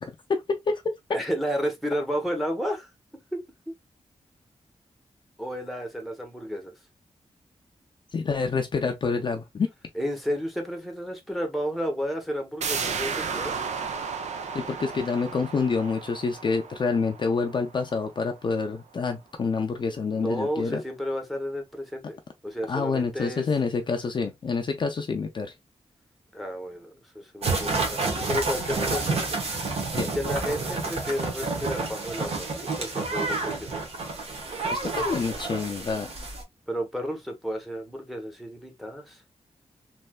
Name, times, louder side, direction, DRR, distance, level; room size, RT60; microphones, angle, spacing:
voice 1, 0.0-0.9 8.1-9.7 14.5-20.8 22.7-25.5 30.0-30.1 34.7-36.1, left 4 dB, 45° left, 0.4 m, -27 dB
voice 2, 1.1-2.9 3.3-3.4 5.4-6.7 9.9-13.6 20.1-23.5 26.3-29.2 30.1-33.8 36.7-39.2, equal, ahead, 0.8 m, -32 dB
sound 1, 12.6-18.1 18.4-18.5, right 6 dB, 80° right, 0.5 m, -34 dB
sound 2, 27.4-36.4, right 3 dB, 60° right, 1.0 m, -29 dB
3.2 x 2.6 x 2.2 m
wide cardioid pair, 135°, 12 cm